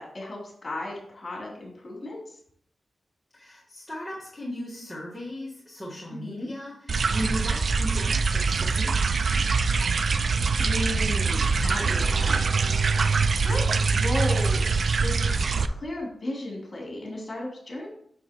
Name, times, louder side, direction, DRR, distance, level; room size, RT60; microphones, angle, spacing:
voice 1, 0.0-2.4 6.1-6.5 10.6-12.7 13.4-14.7 15.0-15.3 15.7-17.9, left 1 dB, 35° left, -2 dB, 3.3 m, -35 dB
voice 2, 3.3-9.2, equal, 5° left, -7 dB, 1.6 m, -37 dB
sound 1, 6.9-15.7, right 4 dB, 60° right, 0.3 m, -24 dB
7.1 x 6.7 x 3.1 m, 0.64 s
wide cardioid pair, 85°, 0 cm